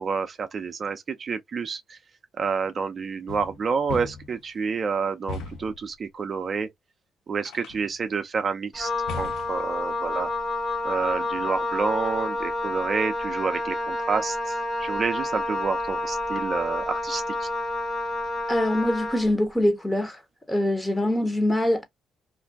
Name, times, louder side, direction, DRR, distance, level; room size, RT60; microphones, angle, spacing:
voice 1, 0.0-2.0 2.4-6.7 7.3-8.9 9.2-10.3 10.8-14.5 14.8-17.5, right 5 dB, 45° right, 0.5 m, -29 dB
sound 1, 3.3-4.4 5.3-5.8 7.4-8.0 9.1-9.7, left 4 dB, 80° left, 0.6 m, -37 dB
Wind instrument woodwind instrument, 8.7-19.3, left 2 dB, 35° left, 1.0 m, -29 dB
voice 2, 18.5-20.2 20.5-21.8, left 1 dB, 10° left, 0.9 m, -23 dB
2.6 x 2.1 x 3.4 m
cardioid pair, 90°, 0 cm